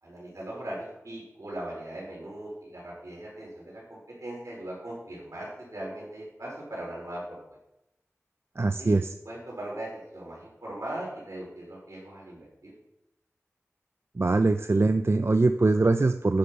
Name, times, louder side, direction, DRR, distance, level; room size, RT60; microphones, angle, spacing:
voice 1, 0.0-7.4 8.6-12.7, right 1 dB, 75° right, -4 dB, 4.5 m, -39 dB
voice 2, 8.6-9.1 14.2-16.4, right 3 dB, 50° right, 9 dB, 0.4 m, -22 dB
9.5 x 6.6 x 5.6 m, 0.88 s
wide cardioid pair, 45°, 5 cm